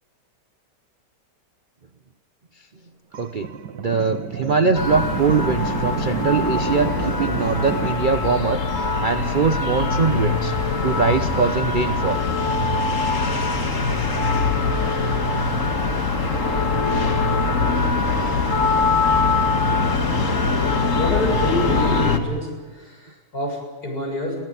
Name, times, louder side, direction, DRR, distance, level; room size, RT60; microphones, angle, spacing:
sound 1, 3.1-7.9, right 7 dB, 85° right, 2.0 m, -30 dB
voice 1, 3.2-3.5 3.8-10.5 10.8-12.2, right 5 dB, 45° right, 9 dB, 0.6 m, -22 dB
sound 2, 4.7-22.2, left 3 dB, 50° left, 2.1 m, -22 dB
voice 2, 21.0-24.4, left 1 dB, 65° left, 0 dB, 7.6 m, -27 dB
24.5 x 16.5 x 9.8 m, 1.4 s
omnidirectional pair, 1.8 m